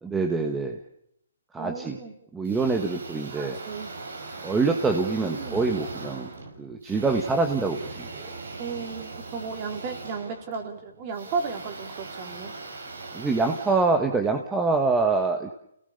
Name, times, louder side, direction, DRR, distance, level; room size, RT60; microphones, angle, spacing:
voice 1, 0.0-0.8 1.5-2.0 2.3-3.6 4.4-6.3 6.6-8.3 13.1-15.5, right 3 dB, 10° right, 4 dB, 1.4 m, -25 dB
voice 2, 1.6-2.1 3.3-3.9 5.2-5.6 8.6-12.5, right 5 dB, 30° right, 4 dB, 3.8 m, -34 dB
sound 1, 2.4-14.7, right 3 dB, 75° right, 6.0 m, -40 dB
29.0 x 18.5 x 6.8 m, 0.77 s
hypercardioid pair, 155°, 0 cm